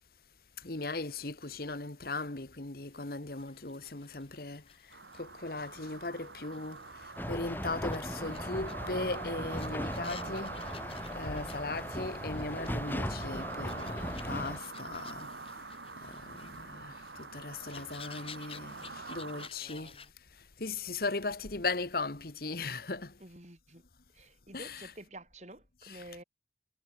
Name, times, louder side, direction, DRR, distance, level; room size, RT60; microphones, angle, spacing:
voice 1, 0.6-4.6 5.1-10.6 11.1-15.7 16.0-20.0 20.6-23.2 24.5-24.9 25.8-26.0, left 3 dB, 55° left, 1.6 m, -38 dB
sound 1, 2.8-20.1, left 7 dB, 30° left, 5.9 m, -55 dB
sound 2, 4.9-19.5, right 3 dB, 85° right, 4.4 m, -45 dB
sound 3, 7.2-14.6, equal, 10° left, 4.3 m, -38 dB
voice 2, 19.6-20.1 23.2-23.8 24.1-26.2, right 1 dB, 40° right, 6.4 m, -50 dB
head